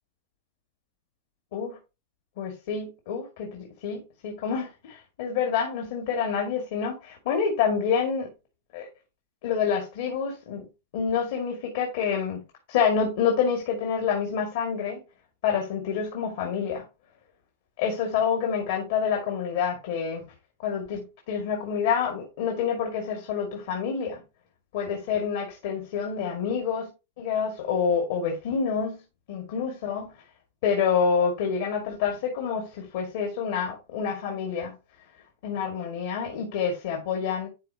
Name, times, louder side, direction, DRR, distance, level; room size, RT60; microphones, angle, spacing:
voice 1, 2.4-8.3 8.7-8.9 9.4-10.7 10.9-12.4 12.7-15.0 15.4-16.8 17.8-20.2 20.6-24.2 24.7-26.9 27.2-29.0 29.3-30.1 30.6-34.8 35.4-37.5, left 6 dB, 65° left, 2.3 m, -27 dB
11.5 x 4.1 x 2.9 m
hypercardioid pair, 120°, 0 cm